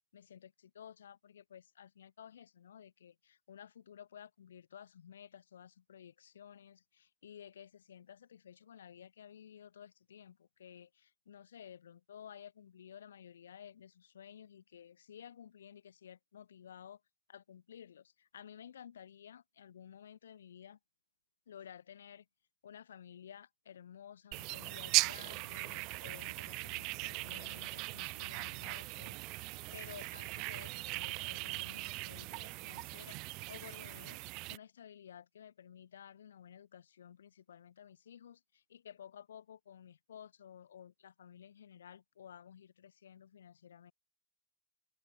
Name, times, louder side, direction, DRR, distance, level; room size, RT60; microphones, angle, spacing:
voice 1, 0.1-17.0 17.3-20.8 21.5-22.3 22.6-43.9, left 9 dB, 85° left, 2.8 m, -54 dB
sound 1, 24.3-34.6, right 27 dB, 55° right, 0.6 m, -39 dB
open air
hypercardioid pair, 95°, 0 cm